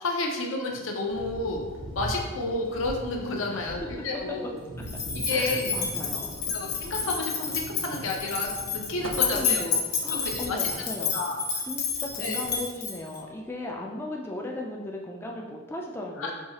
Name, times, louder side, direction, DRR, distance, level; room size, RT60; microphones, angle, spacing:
voice 1, 0.0-1.7 1.9-4.6 5.1-5.7 6.5-9.8 10.1-10.7 11.1-11.4 12.2-12.4 16.2-16.3, left 2 dB, 80° left, 1 dB, 0.6 m, -31 dB
Thunder, 1.1-12.7, right 1 dB, 85° right, 0.7 m, -42 dB
voice 2, 3.5-4.0 5.3-6.5 9.2-11.2 11.7-16.3, left 1 dB, 10° left, -1 dB, 0.3 m, -37 dB
sound 1, 4.9-13.2, left 6 dB, 50° left, 0.8 m, -30 dB
sound 2, 7.4-8.0 8.4-8.5 9.0-10.0 12.1-12.9 13.7-13.8, right 2 dB, 70° right, 0.4 m, -43 dB
4.7 x 2.7 x 2.8 m, 1.3 s
head